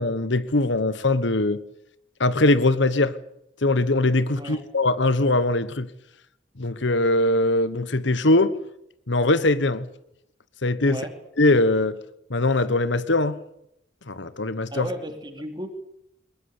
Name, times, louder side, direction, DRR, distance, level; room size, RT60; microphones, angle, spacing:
voice 1, 0.0-1.6 2.2-3.2 3.6-5.9 6.6-8.5 9.1-9.9 10.6-11.0 11.4-12.0 12.3-13.4 14.1-14.9, left 2 dB, 75° left, 1.3 m, -21 dB
voice 2, 14.7-15.7, right 1 dB, 25° right, 3.6 m, -34 dB
22.0 x 19.5 x 8.4 m
head